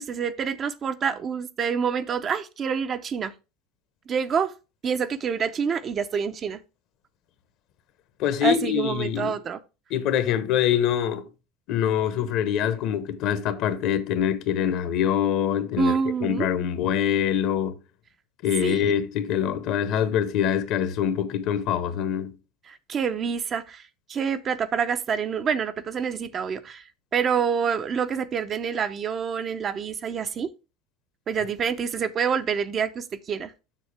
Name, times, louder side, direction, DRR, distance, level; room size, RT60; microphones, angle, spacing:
voice 1, 0.0-3.3 4.1-4.5 4.8-6.6 8.4-9.6 15.8-16.5 18.6-18.9 22.7-23.8 24.1-26.8 27.1-30.5 31.3-33.5, right 6 dB, 35° right, 0.6 m, -27 dB
voice 2, 8.2-9.3 9.9-11.2 11.7-17.7 18.4-22.3, left 9 dB, 60° left, 1.1 m, -24 dB
7.4 x 6.4 x 3.4 m
supercardioid pair, 115°, 0 cm